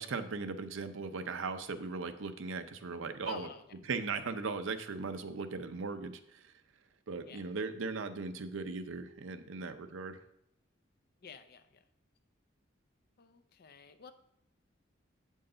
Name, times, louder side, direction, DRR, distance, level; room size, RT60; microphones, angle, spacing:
voice 1, 0.0-3.5 3.9-6.5 7.1-10.2, right 4 dB, 70° right, 9 dB, 0.6 m, -38 dB
voice 2, 3.2-3.6 7.2-7.5 11.2-11.8 13.2-14.1, left 5 dB, 50° left, 10 dB, 0.6 m, -49 dB
7.7 x 6.4 x 3.8 m, 0.73 s
head